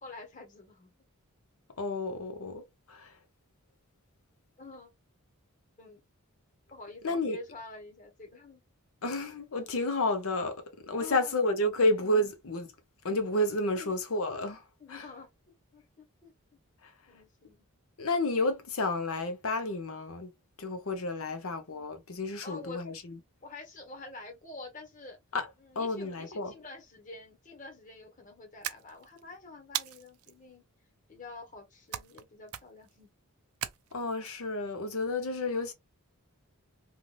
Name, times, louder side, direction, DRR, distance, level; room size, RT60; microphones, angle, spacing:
voice 1, 0.0-0.9 4.6-4.9 5.8-6.0 6.7-8.6 11.0-11.8 13.7-14.0 14.8-16.3 17.1-17.6 22.4-22.8 23.4-25.2 25.6-30.6 31.1-33.1, left 3 dB, 35° left, 1.3 m, -47 dB
voice 2, 1.8-3.1 7.0-7.4 9.0-12.7 13.0-14.6 14.9-15.1 16.8-16.9 18.0-20.3 20.6-23.1 25.3-25.5 25.8-26.5 33.9-35.7, left 2 dB, 65° left, 0.7 m, -31 dB
sound 1, 28.6-29.2 29.7-30.3 31.9-32.2 32.5-32.9 33.6-34.3, right 12 dB, 75° right, 0.4 m, -37 dB
2.6 x 2.5 x 3.2 m
head